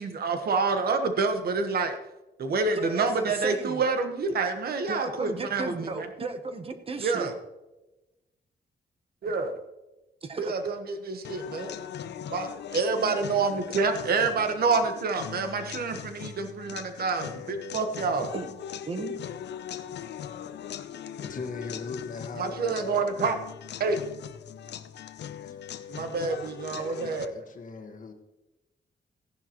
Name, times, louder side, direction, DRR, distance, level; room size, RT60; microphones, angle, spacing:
voice 1, 0.0-2.0 2.4-6.1 7.0-7.3 9.2-9.6 10.4-11.7 12.3-18.3 22.4-23.4 23.8-24.0 25.9-27.3, right 4 dB, 60° right, 7 dB, 1.3 m, -28 dB
voice 2, 2.7-3.8 4.9-7.3 10.2-10.7 18.3-18.5 18.9-19.2, right 3 dB, 35° right, 8 dB, 0.9 m, -34 dB
sound 1, 11.2-27.3, left 9 dB, 85° left, 0.6 m, -40 dB
voice 3, 21.2-23.1 25.4-25.6 26.7-28.1, left 4 dB, 50° left, 5 dB, 1.5 m, -39 dB
15.5 x 10.5 x 3.0 m, 1.0 s
wide cardioid pair, 170°, 18 cm